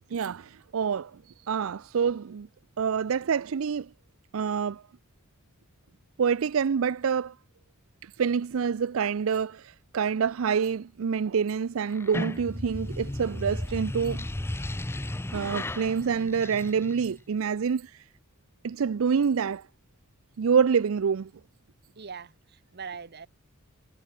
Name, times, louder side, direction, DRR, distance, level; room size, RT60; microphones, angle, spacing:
voice 1, 0.1-1.1 1.5-2.5 2.8-3.9 4.3-4.8 6.2-7.3 8.0-14.2 15.3-18.0 18.6-19.6 20.4-21.3, right 6 dB, 65° right, 0.4 m, -27 dB
sound 1, 11.9-17.2, left 1 dB, 10° left, 0.6 m, -34 dB
voice 2, 22.0-23.3, right 6 dB, 50° right, 0.9 m, -41 dB
head